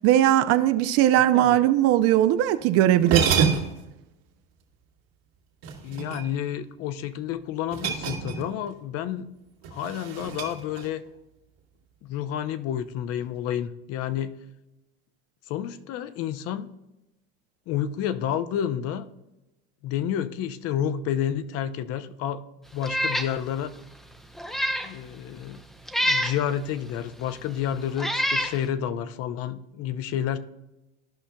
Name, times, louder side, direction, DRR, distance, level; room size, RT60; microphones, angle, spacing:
voice 1, 0.0-3.5, right 12 dB, 50° right, 0.5 m, -19 dB
sound 1, 2.6-2.7 3.0-3.9 5.6-6.5 7.7-8.7 8.9-9.2 9.6-11.1, right 6 dB, 85° right, 2.1 m, -28 dB
voice 2, 5.8-9.3 9.7-11.0 12.0-14.3 15.5-16.7 17.7-19.1 19.8-22.4 22.7-23.7 24.8-25.6 26.0-30.4, left 10 dB, 50° left, 0.6 m, -30 dB
Meow, 22.8-23.3 23.8-23.9 24.4-24.9 25.9-26.4 27.3-27.4 28.0-28.6, equal, ahead, 0.5 m, -26 dB
15.0 x 5.5 x 2.2 m
supercardioid pair, 100°, 31 cm